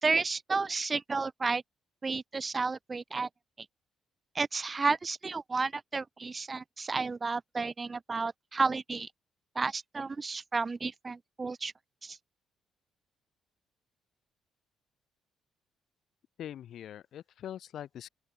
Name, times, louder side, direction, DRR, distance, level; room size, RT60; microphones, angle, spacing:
voice 1, 0.0-1.6 2.0-3.3 4.3-9.1 9.5-11.7 12.0-12.2, right 4 dB, 25° right, 1.2 m, -32 dB
voice 2, 16.4-18.1, left 10 dB, 65° left, 3.9 m, -43 dB
open air
cardioid pair, 100°, 0 cm